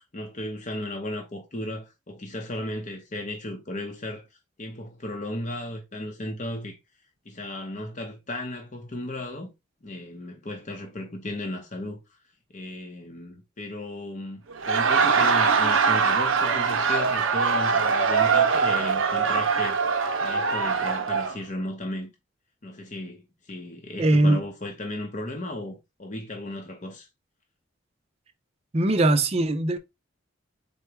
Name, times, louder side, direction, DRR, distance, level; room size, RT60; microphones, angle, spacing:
voice 1, 0.0-4.3 4.6-6.8 7.3-9.5 9.8-12.0 12.5-19.8 20.2-22.1 22.6-27.1, left 1 dB, 40° left, 0.7 m, -35 dB
Laughter, 14.5-21.4, right 5 dB, 85° right, 0.7 m, -22 dB
voice 2, 24.0-24.4 28.7-29.8, right 2 dB, 30° right, 0.5 m, -20 dB
3.8 x 2.2 x 4.5 m
head